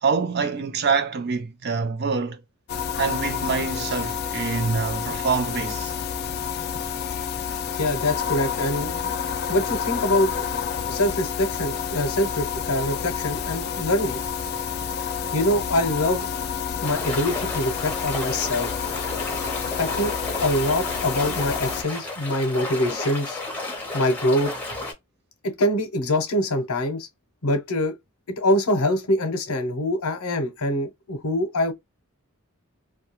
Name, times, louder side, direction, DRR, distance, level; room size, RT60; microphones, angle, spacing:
voice 1, 0.0-2.4 3.0-5.9, right 5 dB, 45° right, 0.4 m, -25 dB
sound 1, 2.7-21.8, left 7 dB, 45° left, 0.3 m, -29 dB
voice 2, 7.7-9.1 9.5-10.3 10.9-14.2 15.3-16.3 16.8-18.7 19.8-23.4 23.9-24.5 25.4-27.1 27.4-28.0 28.4-31.7, left 1 dB, 85° left, 0.7 m, -24 dB
sound 2, 16.8-24.9, left 2 dB, 10° left, 0.7 m, -32 dB
2.3 x 2.2 x 2.9 m
head